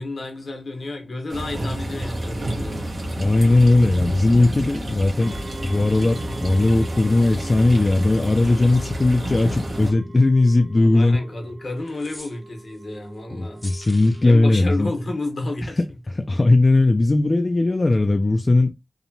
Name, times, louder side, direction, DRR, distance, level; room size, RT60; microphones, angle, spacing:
voice 1, 0.0-2.9 8.4-8.8 10.9-13.6 14.2-15.8, left 2 dB, 75° left, 0.9 m, -31 dB
sound 1, 1.3-9.9, right 1 dB, 80° right, 1.0 m, -30 dB
voice 2, 3.2-5.4 5.6-11.2 13.3-14.9 16.2-18.7, left 2 dB, 40° left, 0.3 m, -18 dB
sound 2, 5.2-15.0, right 3 dB, 60° right, 0.7 m, -44 dB
sound 3, 11.9-12.8 13.6-14.4, equal, ahead, 0.6 m, -42 dB
2.9 x 2.1 x 2.6 m
wide cardioid pair, 70°, 0 cm